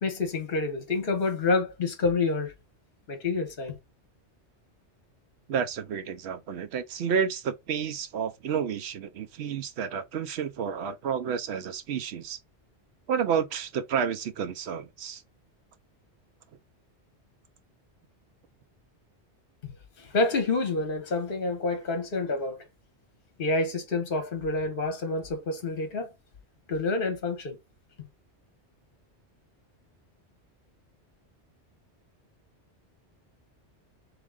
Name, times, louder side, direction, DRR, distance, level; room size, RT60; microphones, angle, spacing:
voice 1, 0.0-2.5 3.1-3.8 19.6-19.7 20.0-22.6 23.4-26.1 26.7-27.6 28.0-28.1, left 3 dB, 55° left, 1.0 m, -28 dB
voice 2, 5.5-12.4 13.1-15.2, right 7 dB, 70° right, 0.9 m, -30 dB
3.6 x 3.3 x 3.5 m
omnidirectional pair, 1.2 m